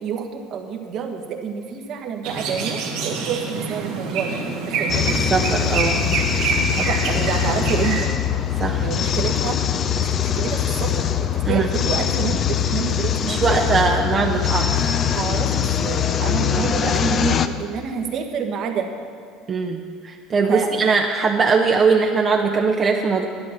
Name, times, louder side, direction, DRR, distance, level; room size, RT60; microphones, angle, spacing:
voice 1, 0.0-5.2 6.8-8.0 8.8-9.6 10.0-13.6 15.1-18.9 20.5-20.7, right 7 dB, 55° right, 4 dB, 1.5 m, -28 dB
sound 1, 2.2-8.0, right 4 dB, 75° right, 2.1 m, -26 dB
sound 2, 4.9-17.5, left 9 dB, 40° left, 0.6 m, -22 dB
voice 2, 5.3-6.0 8.6-8.8 11.4-11.7 13.2-14.8 16.5-16.7 19.5-23.3, right 4 dB, 35° right, 1 dB, 0.9 m, -20 dB
11.5 x 8.8 x 7.4 m, 2.1 s
supercardioid pair, 105°, 0 cm